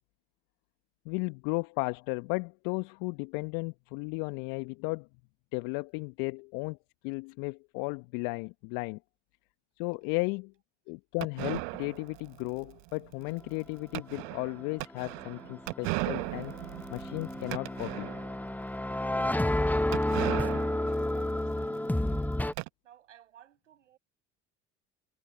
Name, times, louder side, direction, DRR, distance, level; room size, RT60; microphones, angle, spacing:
voice 1, 1.0-5.1 5.5-6.8 7.0-9.0 9.8-10.5 10.9-16.5 16.9-18.1, left 31 dB, 65° left, 1.5 m, -34 dB
sound 1, 11.2-18.5 18.9-19.0 19.1-19.2 19.9-22.7, right 33 dB, 65° right, 1.1 m, -38 dB
sound 2, 15.1-22.5, left 1 dB, 5° left, 1.0 m, -31 dB
voice 2, 20.8-21.8 22.8-24.0, right 11 dB, 80° right, 7.8 m, -58 dB
figure-of-eight pair, 55°, 36 cm